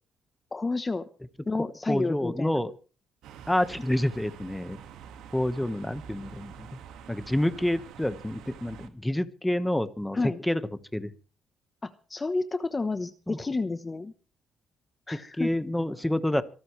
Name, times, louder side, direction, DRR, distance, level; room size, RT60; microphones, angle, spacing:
voice 1, 0.5-1.1 1.5-2.6 10.1-10.4 11.8-14.1 15.1-15.5, left 3 dB, 25° left, 10 dB, 1.1 m, -30 dB
voice 2, 1.9-2.7 3.5-4.8 5.3-6.7 7.1-10.2 10.4-10.6 10.9-11.1 13.3-13.4 15.4-16.4, left 1 dB, 5° left, 11 dB, 1.4 m, -28 dB
sound 1, 3.2-8.9, right 8 dB, 90° right, 1.9 m, -46 dB
26.5 x 12.5 x 3.3 m, 0.37 s
cardioid pair, 90°, 0 cm